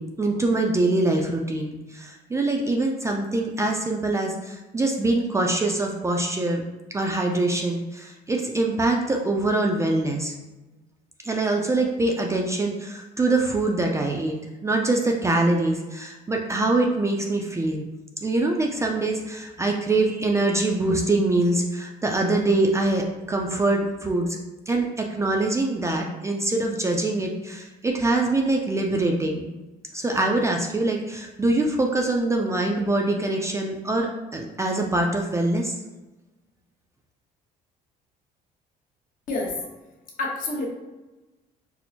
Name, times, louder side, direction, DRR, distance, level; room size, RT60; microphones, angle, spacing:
voice 1, 0.0-6.6 6.9-10.3 11.2-14.4 14.6-17.9 18.2-24.4 24.7-29.4 29.9-35.7, right 2 dB, 15° right, 1 dB, 0.3 m, -24 dB
voice 2, 40.2-40.7, left 2 dB, 55° left, -2 dB, 0.9 m, -27 dB
4.3 x 2.0 x 2.7 m, 1.1 s
cardioid pair, 110°, 17 cm